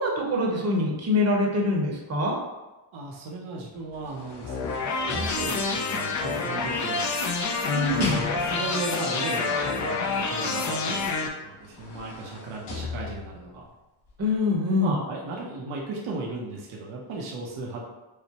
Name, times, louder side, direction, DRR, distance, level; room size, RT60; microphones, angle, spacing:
voice 1, 0.0-2.4 7.7-8.2 14.2-15.0, left 2 dB, 30° right, 0 dB, 0.8 m, -24 dB
voice 2, 2.9-7.1 8.4-13.7 14.8-17.8, right 3 dB, 75° right, -2 dB, 0.8 m, -36 dB
sound 1, 3.7-6.0 6.8-8.8 11.0-11.1 11.5-13.5 14.1-14.2, left 3 dB, 55° left, 1.1 m, -39 dB
sound 2, 4.4-11.3, left 4 dB, 40° left, 0.5 m, -27 dB
4.8 x 2.1 x 2.9 m, 1.1 s
cardioid pair, 85°, 49 cm